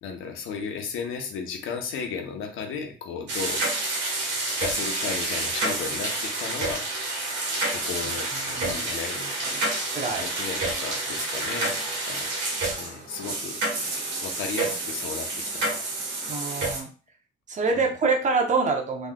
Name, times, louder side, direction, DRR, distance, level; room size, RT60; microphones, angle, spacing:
voice 1, 0.0-3.6 4.5-6.9 7.7-9.3 10.1-11.7 12.1-12.3 12.8-13.6 14.2-15.8 17.7-17.9, left 6 dB, 85° left, 4 dB, 0.8 m, -35 dB
sound 1, 3.3-16.8, right 2 dB, 65° right, 1.3 m, -29 dB
voice 2, 9.9-10.3 16.3-16.9 17.5-19.1, right 4 dB, 40° right, 3 dB, 0.7 m, -25 dB
3.7 x 3.1 x 2.2 m, 0.37 s
cardioid pair, 90°, 20 cm